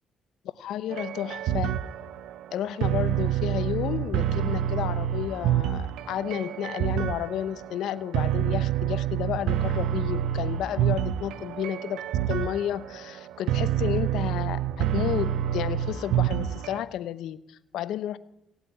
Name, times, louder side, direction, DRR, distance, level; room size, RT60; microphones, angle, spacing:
voice 1, 0.6-1.7 2.5-18.2, left 11 dB, 85° left, 16 dB, 0.7 m, -32 dB
sound 1, 0.9-16.8, right 11 dB, 90° right, 0.5 m, -27 dB
17.5 x 8.2 x 9.2 m, 0.86 s
cardioid pair, 90°, 0 cm